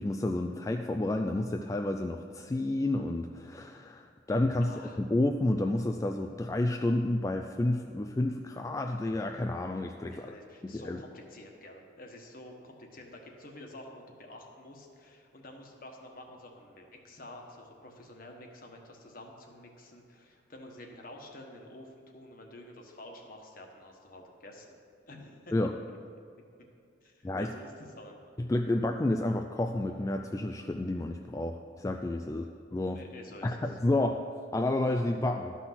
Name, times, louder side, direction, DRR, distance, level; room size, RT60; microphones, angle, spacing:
voice 1, 0.0-10.3 10.6-11.0 25.5-25.7 27.2-27.5 28.4-32.4 32.7-33.0 33.4-34.2 34.5-35.6, left 1 dB, 15° left, 4 dB, 0.3 m, -30 dB
voice 2, 4.6-5.0 10.1-24.8 25.1-25.6 27.0-28.3 32.9-33.8, left 1 dB, 50° left, 2 dB, 1.3 m, -49 dB
12.5 x 5.9 x 5.8 m, 2.3 s
head